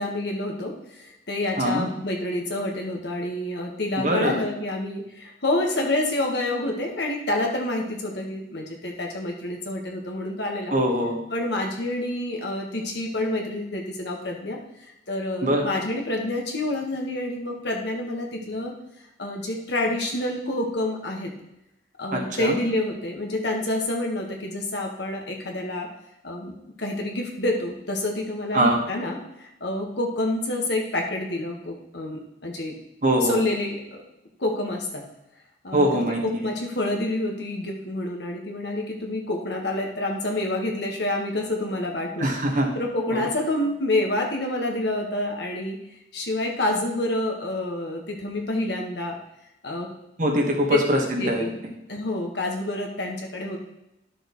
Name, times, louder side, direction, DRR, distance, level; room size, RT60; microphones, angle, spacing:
voice 1, 0.0-10.7 11.3-14.6 15.1-18.7 19.2-21.3 22.0-25.9 26.2-32.8 33.2-34.0 34.4-35.0 35.6-35.9 36.2-42.3 42.7-45.8 46.1-49.2 49.6-49.9 50.7-50.8 51.2-51.6 51.9-53.6, left 1 dB, 65° left, 0 dB, 1.4 m, -28 dB
voice 2, 1.6-1.9 4.0-4.4 10.7-11.1 15.4-15.6 22.1-22.6 28.5-28.8 33.0-33.4 35.7-36.4 42.2-42.7 43.1-43.2 50.2-51.4, right 1 dB, 45° right, 0 dB, 1.4 m, -22 dB
12.0 x 6.3 x 3.1 m, 0.88 s
head